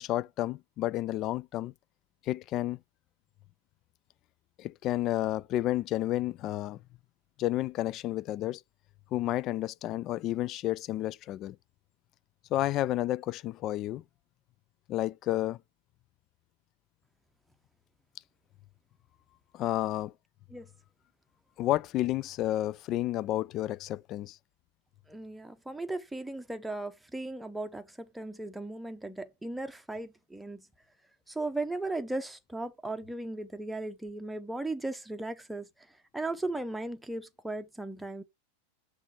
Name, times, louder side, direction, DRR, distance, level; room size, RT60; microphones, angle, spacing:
voice 1, 0.0-1.7 2.3-2.8 4.6-6.8 7.4-8.6 9.1-11.6 12.5-14.0 14.9-15.6 19.5-20.1 21.6-24.4, left 14 dB, 35° left, 0.3 m, -31 dB
voice 2, 25.1-30.6 31.3-35.7 36.1-38.2, right 2 dB, 5° right, 0.8 m, -37 dB
6.0 x 3.4 x 5.7 m
figure-of-eight pair, 90°, 0 cm